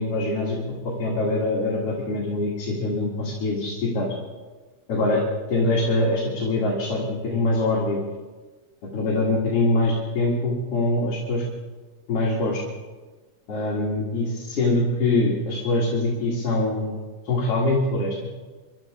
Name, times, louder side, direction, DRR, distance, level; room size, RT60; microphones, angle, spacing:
voice 1, 0.0-4.1 4.9-5.2 5.5-8.0 8.9-11.4 12.1-12.6 13.5-17.0 17.2-18.3, left 2 dB, 55° left, -4 dB, 3.0 m, -24 dB
25.5 x 12.0 x 3.7 m, 1.3 s
omnidirectional pair, 3.3 m